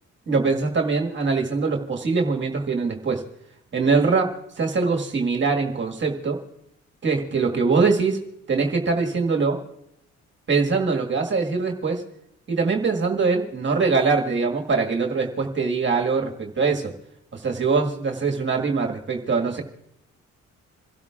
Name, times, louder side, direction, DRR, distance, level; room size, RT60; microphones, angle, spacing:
voice 1, 0.3-3.2 3.7-6.4 7.0-8.2 8.5-9.6 10.5-12.0 12.5-16.9 17.3-19.6, right 4 dB, 40° right, 1 dB, 1.7 m, -23 dB
28.0 x 12.5 x 2.4 m, 0.79 s
cardioid pair, 90°, 29 cm